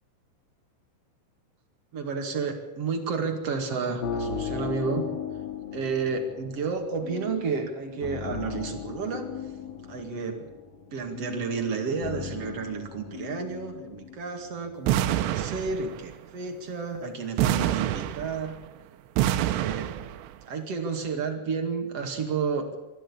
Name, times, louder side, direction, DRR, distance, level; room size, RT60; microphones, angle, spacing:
voice 1, 1.9-5.1 5.7-9.3 9.9-10.5 10.9-18.6 19.4-19.9 20.5-22.7, right 5 dB, 45° right, 4 dB, 2.2 m, -31 dB
sound 1, 3.6-14.7, left 7 dB, 65° left, 2.7 m, -37 dB
sound 2, 14.9-16.1 17.4-18.6 19.2-20.3, right 12 dB, 85° right, 3.4 m, -26 dB
24.0 x 13.5 x 8.6 m, 1.0 s
omnidirectional pair, 5.7 m